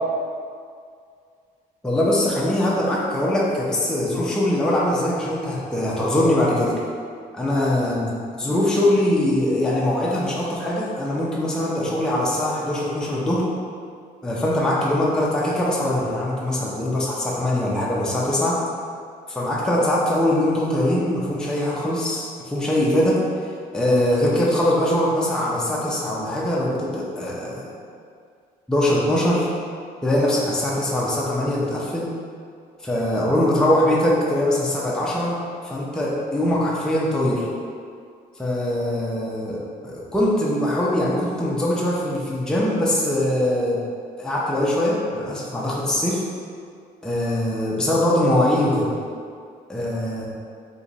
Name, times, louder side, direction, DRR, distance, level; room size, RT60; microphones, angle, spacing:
voice 1, 1.8-6.7 7.3-13.5 14.2-18.6 19.3-23.2 23.7-27.7 28.7-29.5 30.0-32.1 32.8-35.4 35.6-37.5 38.4-43.8 44.2-46.2 47.0-48.9 49.7-50.3, left 1 dB, 5° left, -5 dB, 0.5 m, -22 dB
2.9 x 2.4 x 4.0 m, 2.2 s
cardioid pair, 110°, 17 cm